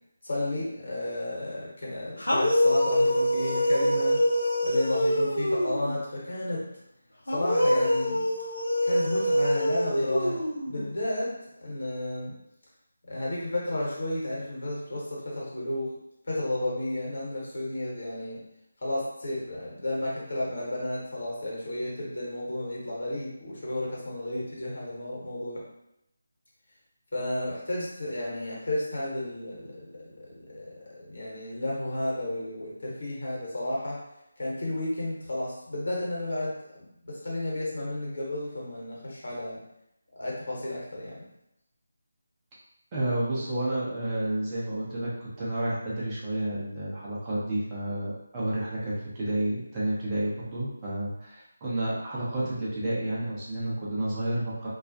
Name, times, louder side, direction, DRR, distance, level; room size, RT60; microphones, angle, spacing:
voice 1, 0.2-4.2 4.6-6.6 7.3-8.3 8.8-11.3 11.6-12.3 13.1-15.9 16.3-18.4 18.8-25.6 27.1-29.9 30.2-34.0 34.4-39.6 40.2-41.2, left 1 dB, 60° left, -5 dB, 1.0 m, -32 dB
sound 1, 2.2-5.9 7.3-10.9, equal, 80° left, 0.6 m, -25 dB
voice 2, 42.9-54.7, right 1 dB, 20° right, -8 dB, 0.6 m, -30 dB
2.3 x 2.0 x 2.6 m, 0.82 s
figure-of-eight pair, 160°, 0 cm